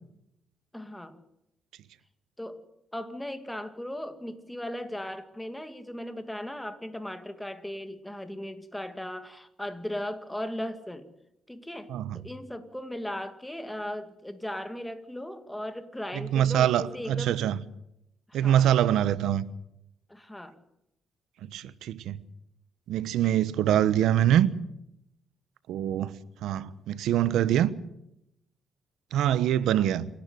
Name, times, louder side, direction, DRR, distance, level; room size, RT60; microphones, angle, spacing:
voice 1, 0.7-1.2 2.4-2.6 2.9-11.1 11.5-17.4 18.3-18.7 20.1-20.6 29.7-29.9, left 1 dB, 5° left, 2.2 m, -37 dB
voice 2, 11.9-12.2 16.1-17.6 18.3-19.4 21.4-22.2 22.9-24.5 25.7-26.1 26.4-27.7 29.1-30.1, right 11 dB, 80° right, 1.1 m, -24 dB
27.5 x 12.0 x 9.3 m
cardioid pair, 90°, 0 cm